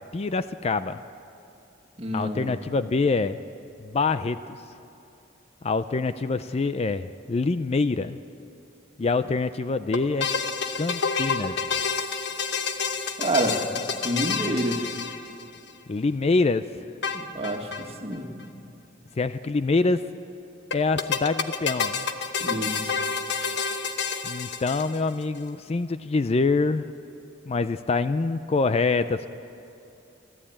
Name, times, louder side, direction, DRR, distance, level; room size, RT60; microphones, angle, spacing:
voice 1, 0.1-1.0 2.1-3.4 3.8-4.6 5.6-8.2 9.0-10.3 10.8-11.5 15.9-16.8 19.2-20.0 20.7-22.1 24.2-26.9 27.5-29.3, left 3 dB, 30° left, 12 dB, 0.4 m, -25 dB
voice 2, 2.0-2.6 13.2-13.7 14.0-14.9 17.1-18.4 22.4-23.0, right 1 dB, 30° right, 3 dB, 1.8 m, -28 dB
sound 1, 9.9-15.7 17.0-17.9 18.1-18.2 18.4-18.5 20.7-25.2, left 5 dB, 60° left, 1.1 m, -29 dB
29.0 x 12.5 x 8.8 m, 2.7 s
head